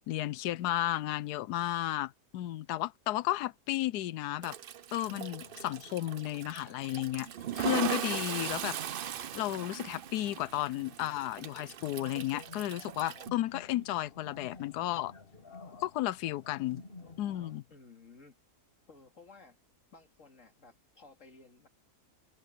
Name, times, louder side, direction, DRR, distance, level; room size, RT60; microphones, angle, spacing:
voice 1, 0.1-4.6 4.9-7.3 7.6-9.1 9.3-15.1 15.8-16.8 17.2-17.6, left 15 dB, 80° left, 1.2 m, -33 dB
Toilet flush, 4.4-13.3, right 10 dB, 85° right, 0.4 m, -39 dB
sound 1, 5.0-17.6, left 3 dB, 35° left, 1.9 m, -53 dB
voice 2, 17.7-18.3 18.9-19.6 19.9-21.7, left 4 dB, 50° left, 3.0 m, -56 dB
omnidirectional pair, 1.7 m